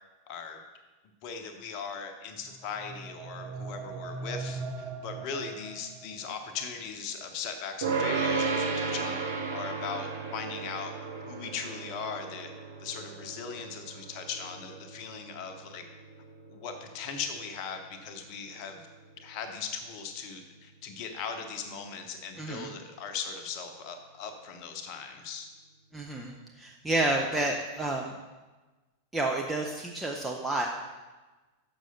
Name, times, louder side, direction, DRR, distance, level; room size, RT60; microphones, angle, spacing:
voice 1, 0.3-0.6 1.2-9.2 9.5-10.9 11.2-12.5 12.8-15.8 16.5-18.8 19.2-25.5, left 6 dB, 45° left, 6 dB, 0.9 m, -39 dB
sound 1, 2.4-6.4, right 3 dB, 35° right, 0.9 m, -40 dB
sound 2, 7.8-19.1, right 4 dB, 60° right, 1.0 m, -35 dB
voice 2, 22.4-22.7 25.9-28.1 29.1-30.7, right 2 dB, 10° right, 0 dB, 0.7 m, -30 dB
6.3 x 6.2 x 5.4 m, 1.2 s
figure-of-eight pair, 90°, 0 cm